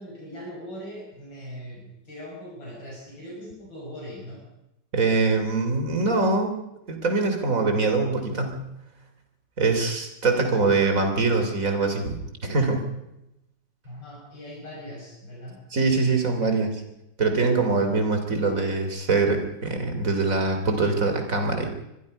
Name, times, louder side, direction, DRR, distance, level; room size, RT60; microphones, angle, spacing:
voice 1, 0.0-4.4 13.8-15.6, equal, 85° left, -4 dB, 7.0 m, -40 dB
voice 2, 4.9-6.5 6.9-8.7 9.6-12.2 12.4-12.8 15.7-16.8 17.2-21.7, right 3 dB, 45° right, 5 dB, 3.6 m, -23 dB
25.5 x 21.0 x 5.4 m, 0.88 s
omnidirectional pair, 2.0 m